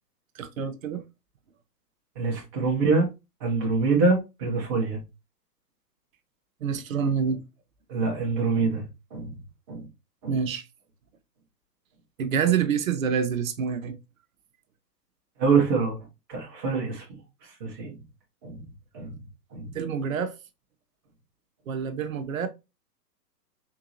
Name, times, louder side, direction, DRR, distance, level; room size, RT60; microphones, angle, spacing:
voice 1, 0.3-1.0 6.6-7.4 10.3-10.6 12.2-14.0 19.7-20.3 21.7-22.5, right 7 dB, 55° right, 0.7 m, -27 dB
voice 2, 2.2-3.1 3.4-5.0 7.9-8.9 9.1-9.4 9.7-9.8 10.2-10.3 15.4-16.0 16.3-17.2 17.6-18.0 18.4-18.6 18.9-19.2 19.5-19.7, right 4 dB, 15° right, 0.5 m, -25 dB
3.8 x 2.8 x 2.5 m
figure-of-eight pair, 125°, 49 cm